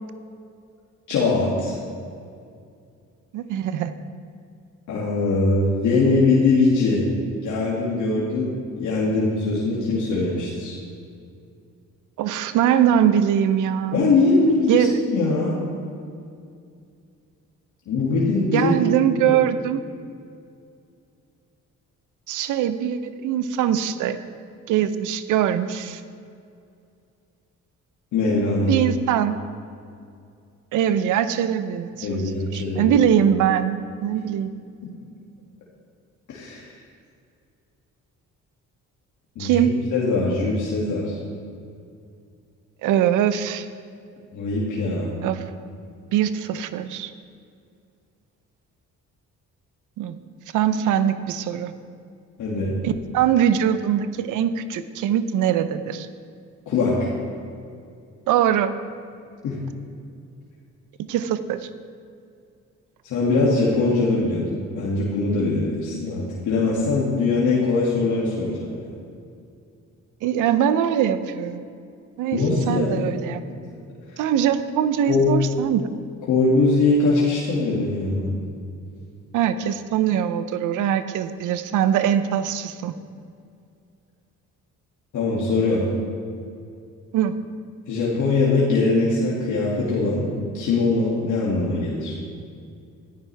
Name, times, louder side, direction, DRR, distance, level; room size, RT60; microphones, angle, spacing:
voice 1, 1.1-1.8 4.9-7.0 7.4-10.8 13.9-15.5 17.9-18.7 19.3-19.4 28.1-28.8 32.0-32.9 36.3-36.7 39.4-41.2 44.3-45.2 52.4-52.7 56.7-57.1 59.4-59.6 63.0-68.8 72.3-73.1 73.5-73.7 75.1-75.3 76.3-78.4 85.1-85.8 87.9-90.3 90.5-92.2, left 3 dB, 75° left, -5 dB, 2.4 m, -22 dB
voice 2, 3.3-3.9 12.2-14.1 14.7-15.0 18.5-19.8 22.3-24.2 24.7-26.0 28.7-29.4 30.7-32.2 32.5-34.5 39.4-39.7 42.8-43.7 45.2-45.4 46.1-47.1 50.0-50.2 50.5-51.7 52.8-56.1 58.3-58.7 61.1-61.6 70.2-71.6 72.2-73.4 74.2-75.9 79.3-82.9 87.1-87.3, right 9 dB, 85° right, 12 dB, 0.7 m, -22 dB
14.0 x 14.0 x 3.4 m, 2.4 s
cardioid pair, 90°, 30 cm